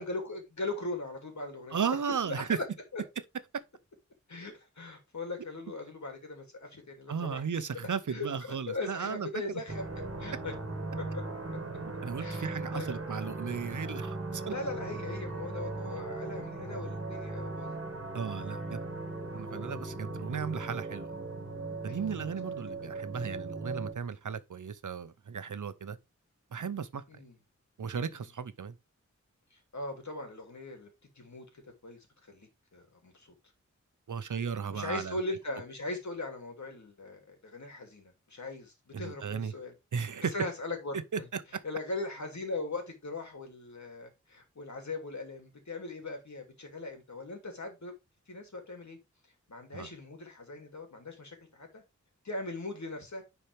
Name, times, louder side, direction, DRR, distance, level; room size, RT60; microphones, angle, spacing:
voice 1, 0.0-1.8 2.2-2.6 2.9-3.0 4.3-7.4 8.1-9.8 10.2-10.5 11.0-11.2 12.2-13.0 14.4-17.8 19.5-19.7 21.9-22.1 27.1-27.4 29.5-30.9 31.2-31.4 31.8-33.3 34.7-39.7 40.3-41.0 41.6-47.9 48.3-49.0 49.5-51.8 52.2-53.2, left 2 dB, 65° left, 2.7 m, -39 dB
voice 2, 1.7-2.6 7.1-9.4 12.0-14.5 18.1-18.8 19.3-21.1 21.8-26.0 26.5-27.0 27.8-28.7 34.1-35.2 38.9-39.5 39.9-40.3 41.1-41.4 49.7-49.9, right 6 dB, 80° right, 0.8 m, -35 dB
sound 1, 9.7-23.9, right 2 dB, 45° right, 1.8 m, -38 dB
10.0 x 4.6 x 3.4 m
wide cardioid pair, 80°, 30 cm